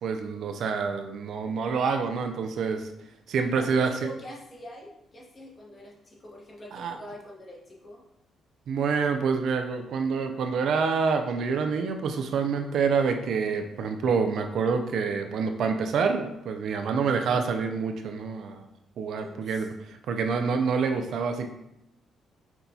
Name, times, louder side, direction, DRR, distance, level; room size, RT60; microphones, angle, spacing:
voice 1, 0.0-2.9 3.3-3.9 6.7-7.0 8.7-18.7 19.0-21.5, right 5 dB, 70° right, 6 dB, 0.4 m, -27 dB
voice 2, 3.5-8.0 19.1-19.7, left 1 dB, 35° left, -2 dB, 1.0 m, -44 dB
5.8 x 2.2 x 2.7 m, 0.86 s
cardioid pair, 90°, 0 cm